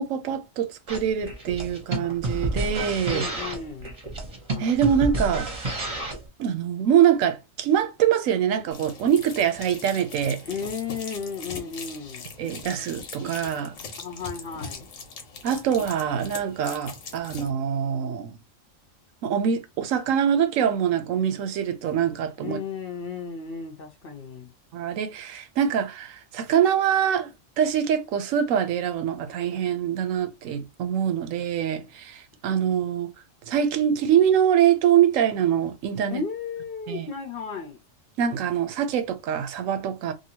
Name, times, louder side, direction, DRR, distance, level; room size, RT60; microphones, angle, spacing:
voice 1, 0.0-3.3 4.6-5.5 6.4-10.4 12.4-13.7 15.4-18.3 19.2-22.6 24.7-33.1 33.5-36.2 36.9-37.1 38.2-40.1, right 9 dB, 80° right, 1.0 m, -24 dB
sound 1, 0.9-6.3, right 2 dB, 30° right, 0.9 m, -30 dB
voice 2, 3.1-3.9 10.5-12.3 14.0-14.9 22.4-24.5 36.1-37.8, left 5 dB, 55° left, 0.7 m, -34 dB
sound 2, 8.7-17.5, left 4 dB, 85° left, 1.2 m, -40 dB
2.8 x 2.6 x 2.8 m
omnidirectional pair, 1.3 m